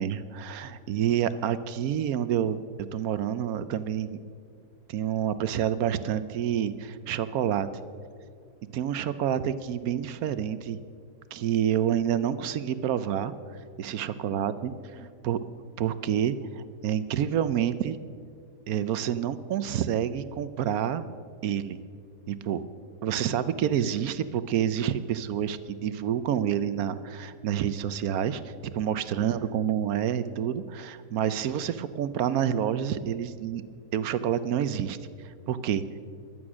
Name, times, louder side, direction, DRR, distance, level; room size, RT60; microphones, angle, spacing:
voice 1, 0.0-2.6 2.9-4.2 4.9-7.7 8.7-10.8 11.3-13.3 13.8-15.4 15.8-18.0 18.7-21.0 21.4-21.8 22.3-22.6 23.0-33.6 33.9-35.0 35.2-36.0, right 9 dB, 70° right, 14 dB, 1.0 m, -28 dB
14.5 x 11.5 x 6.1 m, 2.2 s
omnidirectional pair, 1.8 m